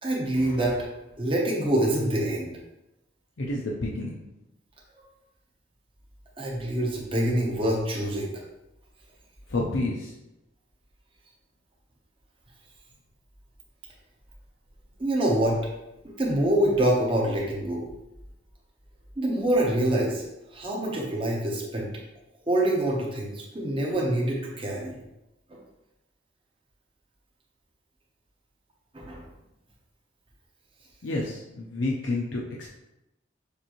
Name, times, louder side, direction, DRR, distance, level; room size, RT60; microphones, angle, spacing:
voice 1, 0.0-0.8 1.2-2.5 6.4-8.4 15.0-15.6 16.0-17.9 19.2-20.2 20.5-21.9 22.5-25.0 25.5-25.6 28.9-29.2, right 1 dB, 25° right, -2 dB, 0.9 m, -25 dB
voice 2, 3.4-4.2 9.5-10.1 31.0-32.7, left 2 dB, 75° left, -3 dB, 0.6 m, -29 dB
6.6 x 2.6 x 3.0 m, 0.91 s
head